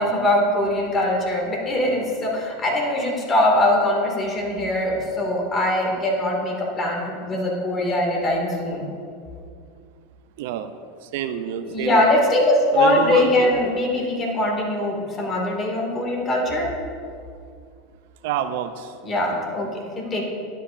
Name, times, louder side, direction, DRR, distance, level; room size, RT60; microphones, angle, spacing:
voice 1, 0.0-8.9 11.7-16.7 19.0-20.2, left 1 dB, 30° left, -1 dB, 2.1 m, -22 dB
voice 2, 10.4-10.7 11.0-12.0 12.7-13.6 18.2-19.0, right 9 dB, 70° right, 10 dB, 0.4 m, -27 dB
11.0 x 8.2 x 2.5 m, 2.3 s
hypercardioid pair, 95°, 0 cm